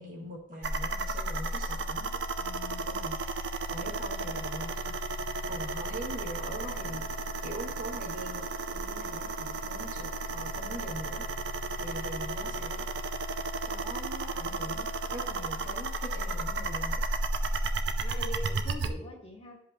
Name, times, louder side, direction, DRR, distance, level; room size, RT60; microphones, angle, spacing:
voice 1, 0.0-5.1 5.5-7.0 7.4-11.3 11.8-12.8 13.7-17.0, equal, 50° right, -2 dB, 1.9 m, -42 dB
sound 1, 0.6-18.9, right 2 dB, 70° right, 0.6 m, -33 dB
voice 2, 4.1-4.5 12.2-12.8 18.0-19.6, left 1 dB, 30° left, 0 dB, 1.2 m, -44 dB
11.5 x 5.2 x 2.8 m, 0.76 s
head